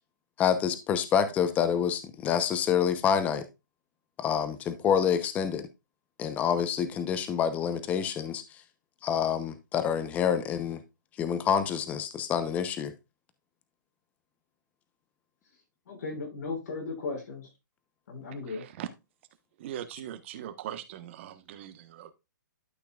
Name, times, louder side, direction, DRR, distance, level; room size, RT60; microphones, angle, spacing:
voice 1, 0.4-3.4 4.2-5.7 6.2-8.4 9.0-10.8 11.2-12.9, left 8 dB, 15° left, 0.8 m, -27 dB
voice 2, 15.9-17.5 18.1-18.6, left 3 dB, 60° left, 5.9 m, -36 dB
voice 3, 18.5-18.9 19.6-22.1, right 11 dB, 35° right, 1.2 m, -40 dB
12.0 x 5.9 x 2.4 m
hypercardioid pair, 160°, 10 cm